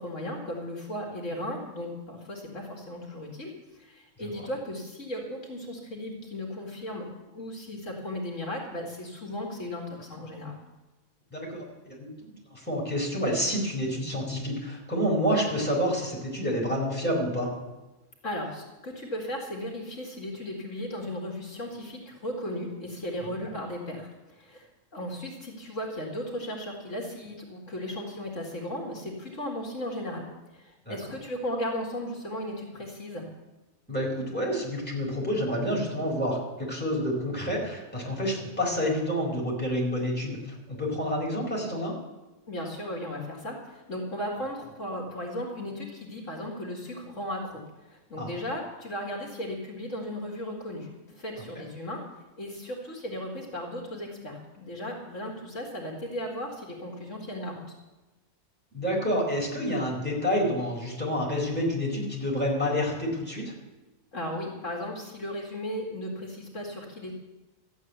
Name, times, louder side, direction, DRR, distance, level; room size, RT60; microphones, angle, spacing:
voice 1, 0.0-10.5 18.2-30.2 30.5-33.3 42.5-52.0 52.4-57.6 64.1-67.1, left 1 dB, 65° left, 0 dB, 2.7 m, -36 dB
voice 2, 11.3-17.5 23.4-23.5 30.9-31.0 33.9-40.4 40.7-41.9 48.2-48.3 58.7-63.5, equal, 5° left, -4 dB, 4.6 m, -28 dB
14.0 x 8.4 x 9.4 m, 1.1 s
omnidirectional pair, 1.4 m